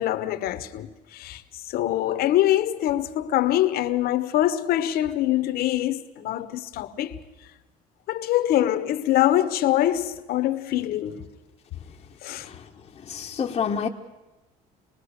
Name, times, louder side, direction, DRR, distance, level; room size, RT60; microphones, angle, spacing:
voice 1, 0.0-1.4 1.7-7.1 8.1-11.2 12.2-12.5, left 13 dB, 65° left, 1.3 m, -24 dB
voice 2, 13.1-13.9, left 6 dB, 30° left, 1.3 m, -27 dB
26.0 x 20.0 x 6.6 m
cardioid pair, 125°, 17 cm